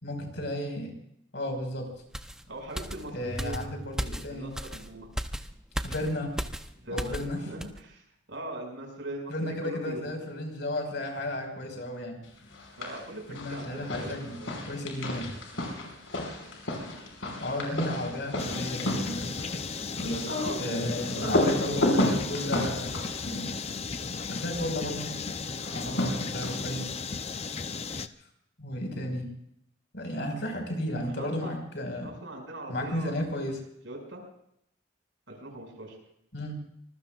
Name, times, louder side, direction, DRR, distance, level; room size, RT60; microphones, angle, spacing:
voice 1, 0.0-0.9 1.3-1.9 3.1-4.5 5.8-6.3 6.9-7.4 9.3-12.2 13.3-14.4 14.7-15.3 17.4-19.5 20.6-23.0 24.3-25.1 25.7-26.9 28.6-29.3 29.9-32.1 32.7-33.6 36.3-36.6, left 1 dB, 60° left, 2 dB, 5.4 m, -33 dB
sound 1, 2.1-7.3 7.6-7.8, equal, 5° right, 0.8 m, -36 dB
voice 2, 2.5-3.6 4.3-5.1 6.8-8.0 8.3-10.1 12.8-13.2 13.5-14.5 19.9-21.8 31.0-31.6 32.0-33.3 33.8-34.2 35.3-35.9, right 1 dB, 70° right, 1 dB, 6.5 m, -40 dB
sound 2, 12.5-13.1 13.3-24.4 25.6-26.8, left 1 dB, 80° left, 5.7 m, -32 dB
sound 3, 18.4-28.1, left 4 dB, 30° left, 0.6 m, -35 dB
25.5 x 21.0 x 2.5 m, 0.74 s
head